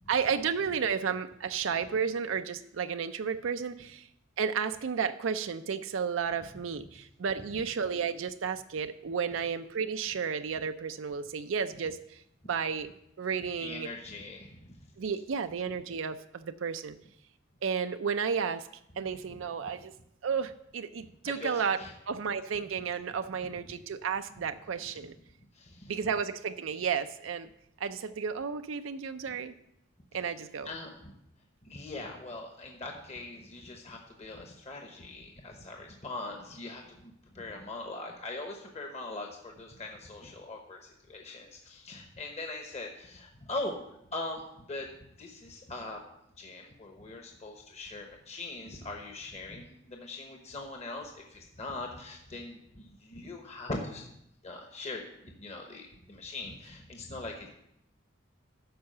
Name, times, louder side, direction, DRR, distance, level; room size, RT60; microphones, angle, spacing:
voice 1, 0.1-4.1 4.4-12.2 12.5-12.9 13.2-13.9 15.0-17.0 17.6-18.7 19.0-19.9 20.2-21.8 22.1-25.1 25.9-27.5 27.8-29.5 30.1-30.7, right 6 dB, 85° right, 9 dB, 0.5 m, -32 dB
voice 2, 13.6-14.9 19.3-19.4 21.0-21.9 25.5-25.9 29.3-29.4 30.6-31.2 31.6-44.9 45.2-46.0 46.4-54.1 54.4-57.5, left 2 dB, 35° left, 2 dB, 1.0 m, -41 dB
12.5 x 4.8 x 6.6 m, 0.80 s
head